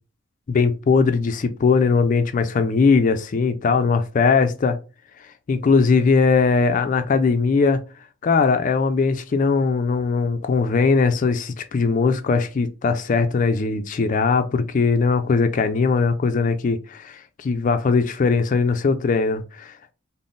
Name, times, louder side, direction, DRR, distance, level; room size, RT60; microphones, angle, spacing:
voice 1, 0.5-4.8 5.5-7.8 8.2-19.9, left 4 dB, 40° left, 0.3 m, -20 dB
3.8 x 2.0 x 3.6 m
head